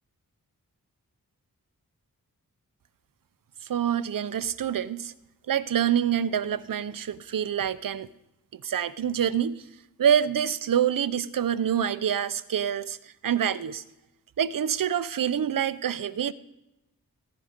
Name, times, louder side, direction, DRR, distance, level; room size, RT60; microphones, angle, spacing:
voice 1, 3.7-5.1 5.5-8.1 8.5-9.6 10.0-13.8 14.4-16.3, right 9 dB, 70° right, 15 dB, 0.6 m, -26 dB
16.0 x 16.0 x 5.2 m, 0.94 s
wide cardioid pair, 120°, 35 cm